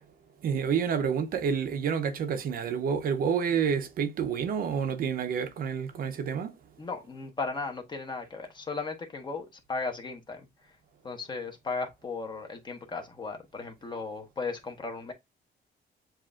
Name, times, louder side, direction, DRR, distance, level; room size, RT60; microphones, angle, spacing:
voice 1, 0.4-6.5, right 7 dB, 55° right, 0.7 m, -29 dB
voice 2, 6.8-10.4 11.0-15.1, left 4 dB, 25° left, 1.0 m, -36 dB
7.4 x 2.6 x 2.4 m
cardioid pair, 140°, 18 cm